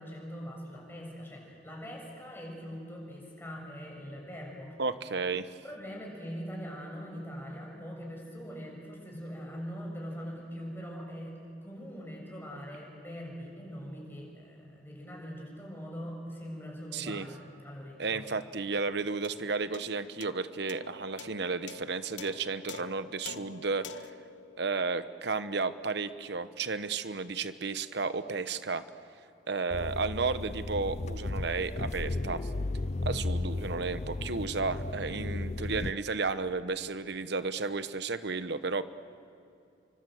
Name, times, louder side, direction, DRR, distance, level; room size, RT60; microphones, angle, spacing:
voice 1, 0.0-4.8 5.6-18.2, equal, 10° left, -2 dB, 7.1 m, -42 dB
voice 2, 4.8-5.5 16.9-17.3 18.0-24.1 24.6-28.8 29.5-32.4 33.0-38.8, right 4 dB, 65° right, 13 dB, 1.0 m, -33 dB
sound 1, 19.2-25.8, left 7 dB, 85° left, 0.9 m, -48 dB
interior car start and depart, 29.7-35.9, left 2 dB, 40° left, 0.6 m, -34 dB
30.0 x 25.0 x 7.9 m, 2.5 s
head